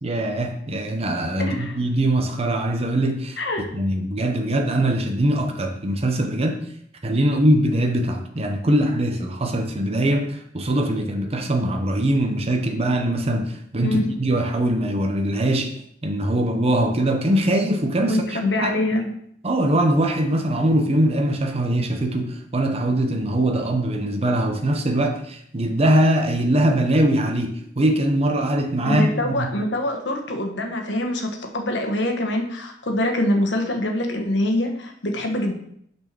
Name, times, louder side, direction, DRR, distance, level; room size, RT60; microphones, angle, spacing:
voice 1, 0.0-6.6 7.0-15.7 16.0-18.7 19.4-29.5, right 1 dB, 35° right, 4 dB, 0.8 m, -22 dB
voice 2, 1.4-1.8 3.4-3.8 13.8-14.2 18.1-19.1 28.8-35.5, left 1 dB, 75° left, 3 dB, 1.3 m, -24 dB
6.1 x 4.4 x 6.0 m, 0.69 s
head